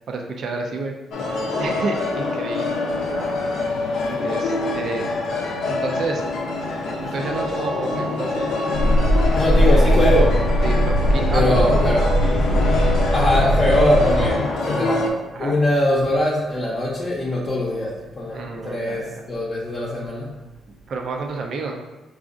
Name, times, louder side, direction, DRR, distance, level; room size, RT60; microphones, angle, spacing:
voice 1, 0.1-0.9 1.6-2.8 4.1-5.1 5.7-6.2 6.9-8.5 10.6-11.7 12.2-12.6 15.3-15.6 18.3-19.2 20.9-21.8, right 3 dB, 55° right, 2 dB, 0.5 m, -30 dB
sound 1, 1.1-15.1, left 3 dB, 75° left, 0.6 m, -25 dB
sound 2, 8.7-14.3, equal, 85° right, 0.9 m, -19 dB
voice 2, 9.4-10.4 11.3-12.1 13.1-20.3, left 1 dB, 35° left, -6 dB, 0.7 m, -22 dB
4.9 x 2.4 x 2.5 m, 1.1 s
cardioid pair, 105°, 0 cm